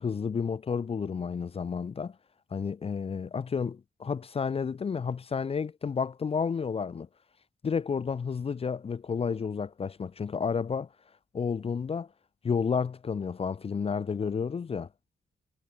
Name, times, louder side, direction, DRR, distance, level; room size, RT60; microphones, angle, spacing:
voice 1, 0.0-2.2 2.5-7.1 7.6-10.9 11.3-12.1 12.4-14.9, left 6 dB, 35° left, 0.7 m, -31 dB
wide cardioid pair, 175°, 17 cm